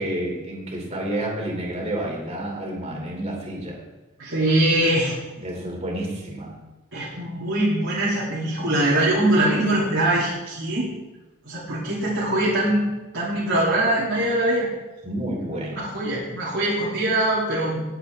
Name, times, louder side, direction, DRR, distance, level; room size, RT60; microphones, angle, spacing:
voice 1, 0.0-3.8 5.4-6.5 9.5-9.7 15.0-15.9, right 1 dB, 30° right, -1 dB, 2.9 m, -30 dB
voice 2, 4.2-5.2 6.9-10.9 11.5-12.8 13.1-14.7 15.7-17.8, right 1 dB, 65° right, -8 dB, 2.8 m, -22 dB
19.0 x 7.9 x 3.5 m, 1.1 s
head